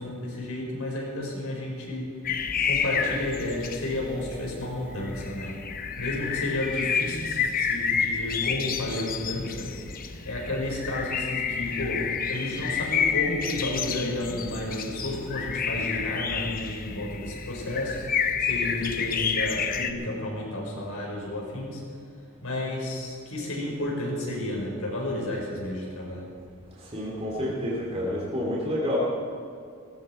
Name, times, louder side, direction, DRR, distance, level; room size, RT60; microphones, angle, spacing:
voice 1, 0.0-2.2 2.6-5.6 6.0-9.7 10.2-18.0 18.4-21.8 22.4-26.3, left 1 dB, 80° left, -2 dB, 4.9 m, -32 dB
sound 1, 2.2-19.9, left 6 dB, 40° left, 0.9 m, -30 dB
voice 2, 26.8-29.0, equal, 30° right, -5 dB, 3.0 m, -29 dB
18.0 x 16.0 x 4.5 m, 2.4 s
head